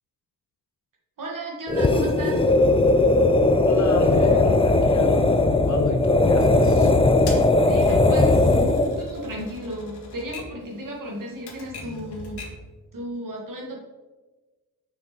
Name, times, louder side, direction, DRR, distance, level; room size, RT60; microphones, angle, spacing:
voice 1, 1.2-2.5 7.7-12.5 12.9-13.8, equal, 55° right, -2 dB, 1.9 m, -34 dB
sound 1, 1.7-9.0, left 2 dB, 15° left, 0.4 m, -18 dB
voice 2, 3.7-6.9, left 3 dB, 45° left, 5 dB, 0.9 m, -29 dB
Typewriter, 7.3-12.7, left 2 dB, 90° left, 1.7 m, -40 dB
6.0 x 6.0 x 4.3 m, 1.2 s
wide cardioid pair, 125°, 39 cm